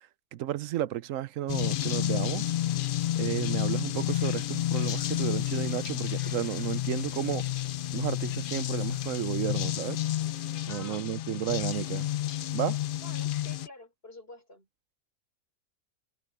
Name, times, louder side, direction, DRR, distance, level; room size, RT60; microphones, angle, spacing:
voice 1, 0.3-2.5 3.2-7.5 7.9-10.0 10.7-12.1 12.5-12.8, right 12 dB, 75° right, 1.0 m, -32 dB
sound 1, 1.5-13.7, left 13 dB, 75° left, 0.4 m, -30 dB
sound 2, 4.1-9.5, equal, 5° right, 6.6 m, -56 dB
voice 2, 10.7-11.2 13.0-14.7, left 1 dB, 45° left, 4.7 m, -49 dB
omnidirectional pair, 1.4 m